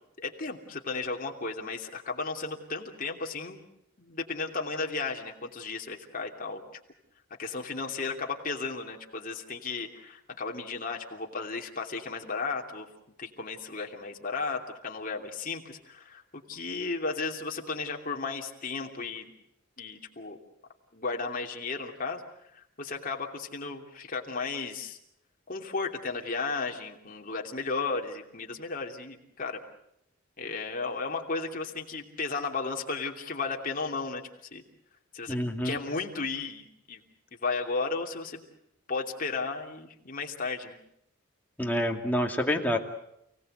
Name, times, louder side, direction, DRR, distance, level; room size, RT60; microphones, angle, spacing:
voice 1, 0.2-3.6 4.0-6.6 7.4-12.9 13.2-16.2 16.5-19.3 19.8-20.4 20.9-22.2 22.5-25.0 25.5-29.6 30.4-34.2 34.5-34.6 35.1-35.4 35.6-37.0 37.3-38.4 38.9-40.8, left 4 dB, 40° left, 2 dB, 2.9 m, -34 dB
voice 2, 35.3-35.8 41.6-42.8, equal, 10° left, 1 dB, 2.4 m, -27 dB
29.5 x 18.5 x 8.0 m, 0.78 s
head